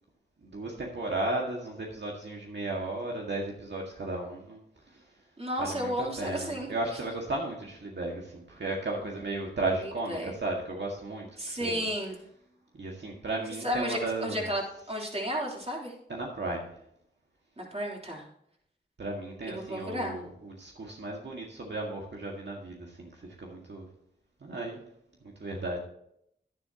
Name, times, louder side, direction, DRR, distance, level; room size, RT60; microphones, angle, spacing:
voice 1, 0.4-4.6 4.9-5.0 5.6-11.9 12.8-14.5 16.1-16.7 19.0-23.9 24.4-24.8 25.4-25.8, right 2 dB, 65° right, -1 dB, 1.9 m, -35 dB
voice 2, 5.4-6.7 9.8-10.3 11.4-12.2 13.6-14.6 14.9-15.9 17.6-18.2 19.5-20.2, equal, 35° right, -2 dB, 3.4 m, -33 dB
11.0 x 10.5 x 2.9 m, 0.75 s
wide cardioid pair, 60°, 19 cm